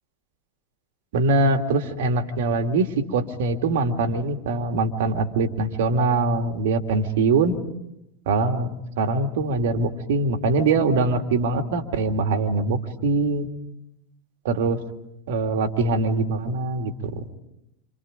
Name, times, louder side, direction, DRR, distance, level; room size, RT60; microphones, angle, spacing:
voice 1, 1.1-7.6 8.3-13.5 14.4-14.8 15.3-17.2, right 3 dB, 65° right, 6 dB, 2.4 m, -23 dB
27.5 x 27.5 x 5.2 m, 0.83 s
figure-of-eight pair, 90°, 0 cm